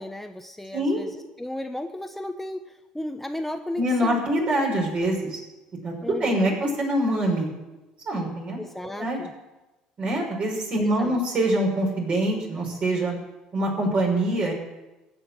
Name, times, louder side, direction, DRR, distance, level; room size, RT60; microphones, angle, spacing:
voice 1, 0.0-4.7 6.0-6.6 8.6-9.3 10.8-11.2, left 1 dB, 5° left, 6 dB, 1.0 m, -35 dB
voice 2, 3.8-5.4 5.8-7.5 8.1-8.6 9.0-9.2 10.0-13.1 13.5-14.5, right 1 dB, 45° right, 0 dB, 5.5 m, -24 dB
15.5 x 6.3 x 8.9 m, 1.1 s
hypercardioid pair, 70°, 3 cm